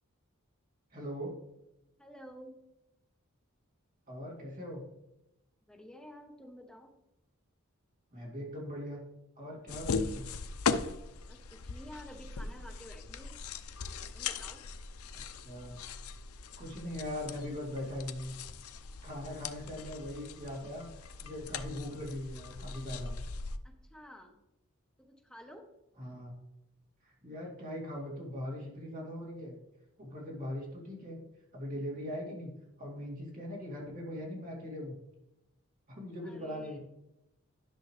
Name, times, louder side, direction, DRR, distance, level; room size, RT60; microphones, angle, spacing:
voice 1, 0.9-1.3 4.1-4.8 8.1-9.0 9.4-10.3 15.1-15.8 16.6-18.3 19.0-20.9 21.2-23.1 26.0-26.3 27.0-29.6 30.0-31.2 31.5-32.5 32.8-35.0 35.9-36.8, left 1 dB, 40° right, -3 dB, 2.5 m, -40 dB
voice 2, 2.0-2.6 5.7-6.9 11.3-13.3 14.1-14.6 23.6-24.4 25.0-25.7 36.2-36.8, equal, 5° left, 2 dB, 1.0 m, -51 dB
sound 1, 9.7-23.6, left 5 dB, 80° left, 0.5 m, -39 dB
11.0 x 6.5 x 3.2 m, 0.89 s
head